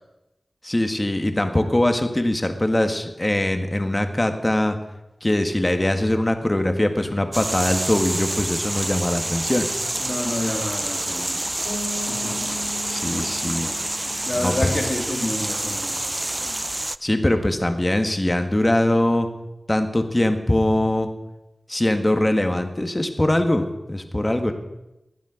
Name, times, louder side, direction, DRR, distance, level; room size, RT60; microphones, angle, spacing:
voice 1, 0.6-4.8 5.2-9.7 12.9-13.7 14.4-14.7 17.0-19.3 19.7-21.1 21.7-24.5, left 1 dB, 25° left, 6 dB, 1.8 m, -22 dB
sound 1, 7.3-17.0, right 1 dB, 25° right, 0.4 m, -27 dB
voice 2, 10.0-11.4 12.1-12.5 14.2-16.0, left 1 dB, 45° left, 1 dB, 3.4 m, -28 dB
Bass guitar, 11.6-15.4, left 3 dB, 80° left, 6.3 m, -37 dB
20.5 x 9.1 x 5.2 m, 0.93 s
wide cardioid pair, 50°, 0 cm